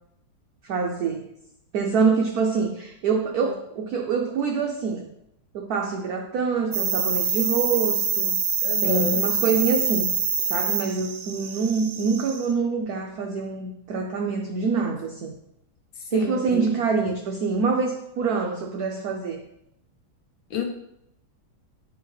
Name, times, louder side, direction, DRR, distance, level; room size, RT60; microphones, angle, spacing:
voice 1, 0.6-1.3 1.7-5.1 5.5-8.4 8.8-10.1 10.5-15.3 16.1-19.4, right 5 dB, 80° right, 3 dB, 0.8 m, -25 dB
sound 1, 6.7-12.5, right 6 dB, 60° right, 1.2 m, -25 dB
voice 2, 8.6-9.2 16.1-16.6 20.5-20.6, left 6 dB, 70° left, 0 dB, 1.6 m, -29 dB
9.2 x 3.6 x 3.2 m, 0.80 s
omnidirectional pair, 2.3 m